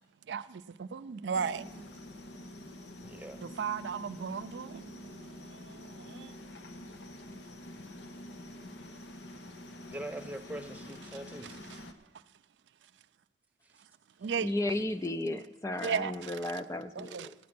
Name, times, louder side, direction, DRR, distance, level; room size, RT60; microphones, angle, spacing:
voice 1, 0.3-1.7 3.4-6.3 11.7-11.8 14.2-14.5 15.8-16.3 17.0-17.3, right 6 dB, 90° right, 0.4 m, -36 dB
sound 1, 1.3-11.9, left 1 dB, 90° left, 1.0 m, -47 dB
voice 2, 3.0-3.5 9.9-11.6, right 1 dB, 10° right, 0.7 m, -42 dB
voice 3, 14.4-17.3, left 1 dB, 15° left, 0.3 m, -34 dB
14.5 x 9.4 x 6.0 m
head